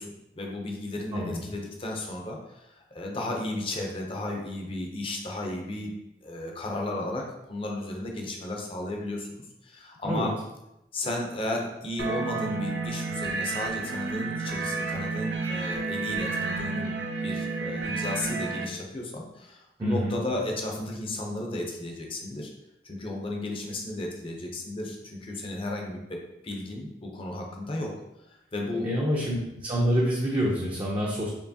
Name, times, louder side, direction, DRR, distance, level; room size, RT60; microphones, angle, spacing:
voice 1, 0.0-5.9 6.2-10.3 10.9-16.9 17.2-22.5 22.8-26.2 26.4-27.9 28.3-28.9, left 1 dB, 30° left, 0 dB, 0.6 m, -34 dB
voice 2, 1.1-1.5 10.0-10.3 19.8-20.1 28.8-31.3, equal, 30° right, -5 dB, 0.6 m, -27 dB
sound 1, 12.0-18.6, right 4 dB, 80° right, 0.6 m, -31 dB
4.5 x 2.9 x 2.7 m, 0.90 s
head